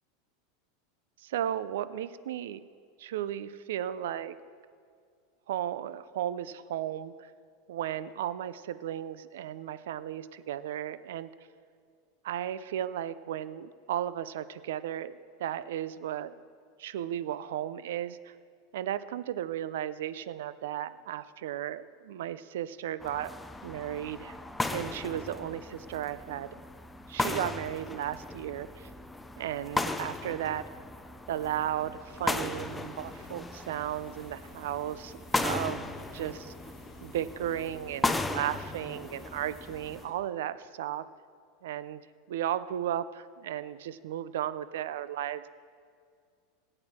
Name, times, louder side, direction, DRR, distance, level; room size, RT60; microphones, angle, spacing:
voice 1, 1.2-2.6 3.0-4.4 5.5-7.3 7.7-11.3 12.2-15.1 15.4-16.3 16.8-18.3 18.7-23.3 23.6-24.4 24.7-26.6 27.1-28.9 29.4-30.6 31.3-36.5 37.0-41.0 41.6-42.0 42.3-45.5, right 11 dB, 80° right, 15 dB, 0.5 m, -35 dB
sound 1, 23.0-40.0, left 2 dB, 5° left, 0.5 m, -36 dB
sound 2, 32.1-40.1, left 3 dB, 25° left, 1.9 m, -53 dB
17.5 x 8.8 x 4.3 m, 2.2 s
supercardioid pair, 150°, 0 cm